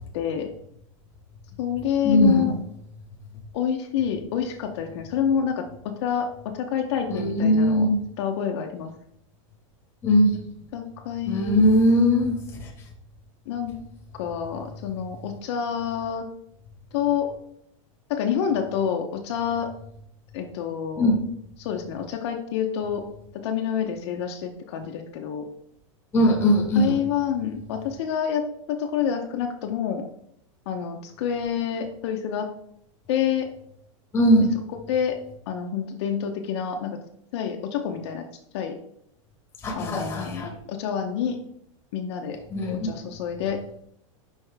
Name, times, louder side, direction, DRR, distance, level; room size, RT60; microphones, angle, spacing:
voice 1, 0.1-0.5 1.6-2.5 3.5-7.9 8.2-8.9 10.7-11.6 13.5-13.7 14.1-16.3 16.9-17.3 18.1-19.7 20.3-21.1 21.6-23.0 23.3-25.5 26.7-30.0 30.7-32.5 33.1-33.5 34.9-35.2 35.5-37.0 37.3-38.2 38.5-38.8 39.8-41.4 41.9-42.4 42.8-43.6, left 8 dB, 55° left, 3 dB, 0.7 m, -28 dB
voice 2, 2.0-2.6 7.1-8.0 10.0-10.4 11.2-12.7 21.0-21.2 26.1-27.0 34.1-34.5 39.6-40.5 42.5-42.9, equal, 15° left, 1 dB, 1.1 m, -20 dB
5.6 x 5.2 x 3.4 m, 0.72 s
supercardioid pair, 165°, 17 cm